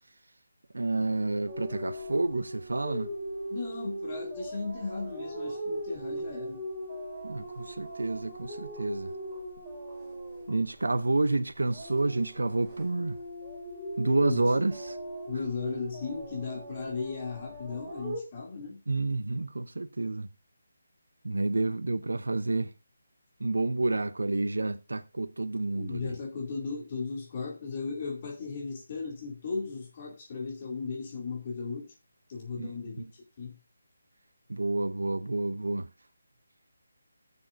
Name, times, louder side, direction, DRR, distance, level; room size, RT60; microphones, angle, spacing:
voice 1, 0.7-3.1 7.2-9.1 10.5-13.2 14.0-15.0 18.9-20.3 21.2-22.7 23.4-26.1 32.6-32.7 34.5-35.9, right 2 dB, 80° right, 0.6 m, -29 dB
sound 1, 1.5-11.3 11.6-18.2, equal, 15° right, 4.0 m, -39 dB
voice 2, 3.5-6.6 14.2-14.5 15.3-18.8 25.7-31.9 32.3-33.6, left 4 dB, 35° left, 2.3 m, -36 dB
19.5 x 7.0 x 2.5 m
figure-of-eight pair, 155°, 0 cm